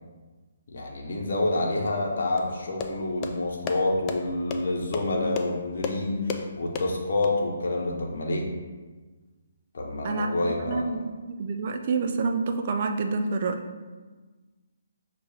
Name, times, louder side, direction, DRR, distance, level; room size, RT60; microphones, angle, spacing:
voice 1, 0.7-8.5 9.7-10.9, left 2 dB, 55° left, -1 dB, 0.8 m, -28 dB
sound 1, 2.4-7.3, left 5 dB, 25° left, 0.3 m, -36 dB
voice 2, 10.0-13.6, right 4 dB, 45° right, 5 dB, 0.4 m, -28 dB
6.0 x 2.5 x 3.3 m, 1.3 s
figure-of-eight pair, 140°, 0 cm